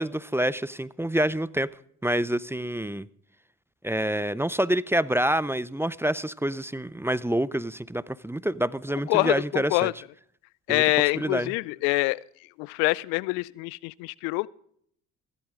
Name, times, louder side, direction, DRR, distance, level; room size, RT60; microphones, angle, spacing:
voice 1, 0.0-1.7 2.0-3.1 3.8-9.9 10.7-10.8 11.1-11.5, right 1 dB, 5° right, 19 dB, 0.5 m, -27 dB
voice 2, 9.1-9.9 10.7-12.2 12.6-14.5, left 24 dB, 80° left, 23 dB, 0.5 m, -25 dB
16.0 x 13.0 x 3.7 m, 0.66 s
hypercardioid pair, 60°, 37 cm